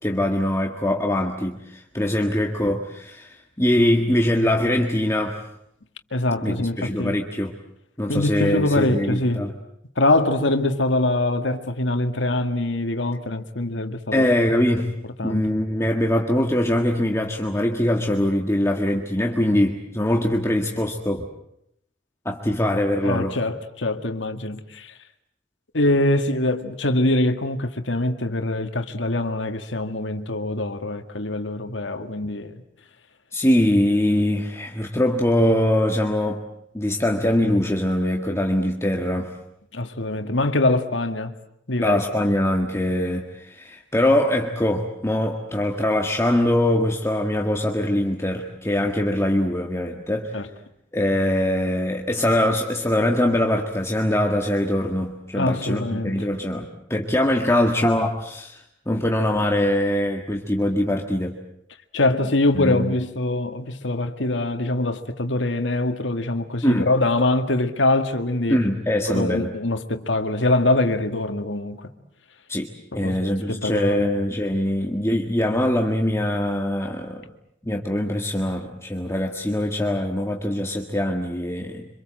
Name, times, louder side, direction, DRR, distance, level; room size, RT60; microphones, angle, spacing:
voice 1, 0.0-5.4 6.4-7.5 8.0-9.5 14.1-14.9 15.2-21.3 22.3-23.4 33.3-36.4 36.7-39.3 41.8-50.4 50.9-61.4 62.5-62.9 66.6-66.9 68.5-69.5 72.5-72.7 72.9-77.2 77.6-81.9, left 1 dB, 15° left, 1.7 m, -22 dB
voice 2, 6.1-7.1 8.1-9.4 10.0-14.3 15.2-15.5 23.0-24.9 25.7-32.6 39.7-41.3 41.7-42.0 50.3-50.5 55.3-56.3 61.9-68.6 69.1-71.9 72.9-73.2 73.5-74.0, left 2 dB, 85° left, 2.0 m, -23 dB
27.0 x 26.0 x 7.7 m
head